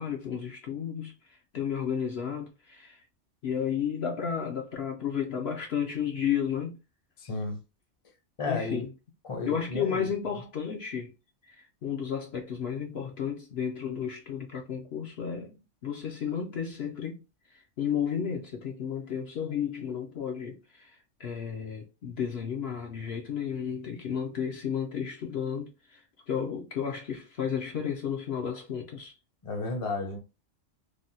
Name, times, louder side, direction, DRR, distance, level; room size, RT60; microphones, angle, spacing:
voice 1, 0.0-3.0 3.4-6.8 8.5-8.9 9.4-11.1 11.4-17.2 17.5-29.1, left 8 dB, 65° left, 0.8 m, -33 dB
voice 2, 7.2-7.6 8.4-8.8 9.3-10.1 29.4-30.2, left 3 dB, 35° left, 0.7 m, -32 dB
3.4 x 2.2 x 2.6 m
omnidirectional pair, 1.3 m